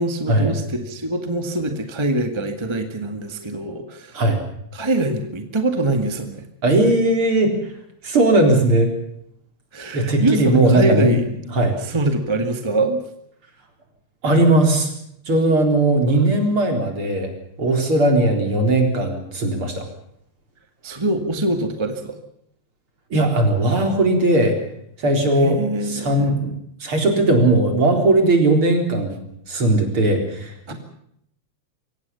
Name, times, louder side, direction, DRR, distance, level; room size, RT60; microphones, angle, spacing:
voice 1, 0.0-4.2 4.7-6.4 9.7-11.2 11.8-13.0 16.1-16.2 20.8-22.2 25.4-26.3 30.7-30.8, right 2 dB, 10° right, 6 dB, 1.5 m, -24 dB
voice 2, 6.6-7.5 8.0-8.9 9.9-11.2 11.5-11.8 14.2-14.9 15.3-17.3 17.6-19.8 23.1-24.6 25.0-25.6 25.9-26.5 26.8-29.2 29.5-30.7, right 2 dB, 45° right, 4 dB, 4.8 m, -18 dB
24.0 x 18.0 x 7.0 m, 0.72 s
omnidirectional pair, 3.3 m